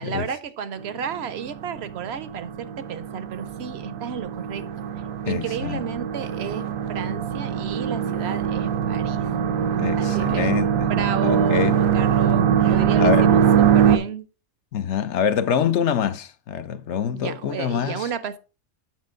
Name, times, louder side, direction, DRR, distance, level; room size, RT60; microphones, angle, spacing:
voice 1, 0.0-4.8 5.2-9.3 10.0-14.3 17.1-18.4, right 7 dB, 60° right, 0.8 m, -32 dB
sound 1, 0.8-14.0, right 8 dB, 85° right, 1.1 m, -22 dB
voice 2, 5.3-5.8 9.8-10.9 11.2-11.7 13.0-13.3 14.7-18.1, left 8 dB, 65° left, 0.9 m, -25 dB
7.5 x 6.3 x 3.7 m
omnidirectional pair, 1.4 m